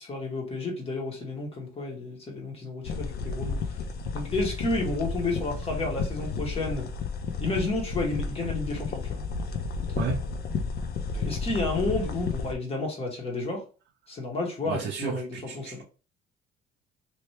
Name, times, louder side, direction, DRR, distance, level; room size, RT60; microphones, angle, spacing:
voice 1, 0.0-3.8 4.1-6.9 7.4-9.2 11.1-13.6 14.1-15.8, left 2 dB, 30° left, 1.5 m, -31 dB
sound 1, 2.8-12.5, left 4 dB, 55° left, 0.7 m, -32 dB
voice 2, 10.0-10.3 14.7-15.8, right 7 dB, 60° right, 0.6 m, -33 dB
2.9 x 2.9 x 3.2 m
cardioid pair, 115°, 19 cm